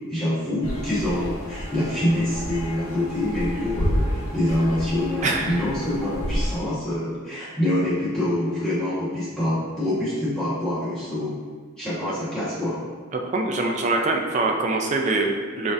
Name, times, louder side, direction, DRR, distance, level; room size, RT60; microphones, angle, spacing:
voice 1, 0.1-11.3 11.8-12.8, left 1 dB, 5° left, -12 dB, 1.3 m, -25 dB
sound 1, 0.6-6.6, equal, 70° left, 0.7 m, -30 dB
voice 2, 13.1-15.7, right 2 dB, 35° right, 2 dB, 0.3 m, -24 dB
5.0 x 2.6 x 2.6 m, 1.5 s
head